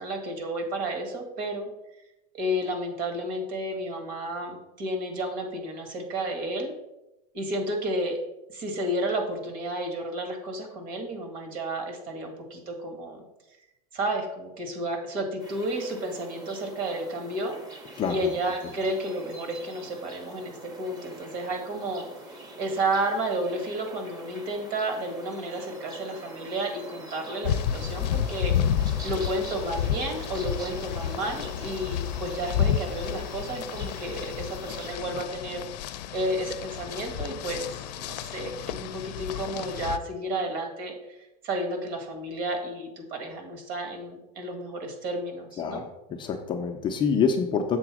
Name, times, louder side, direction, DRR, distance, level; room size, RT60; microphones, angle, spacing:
voice 1, 0.0-1.7 2.3-6.7 7.3-8.2 8.5-13.2 13.9-17.6 18.1-35.6 36.1-40.9 41.4-45.8, right 1 dB, 45° right, 4 dB, 1.8 m, -32 dB
sound 1, 15.4-34.9, right 1 dB, 20° right, 1.0 m, -44 dB
sound 2, 27.4-40.0, left 9 dB, 90° left, 0.5 m, -31 dB
voice 2, 45.6-47.8, left 6 dB, 25° left, 3 dB, 0.5 m, -26 dB
7.0 x 3.9 x 6.1 m, 0.93 s
supercardioid pair, 155°, 20 cm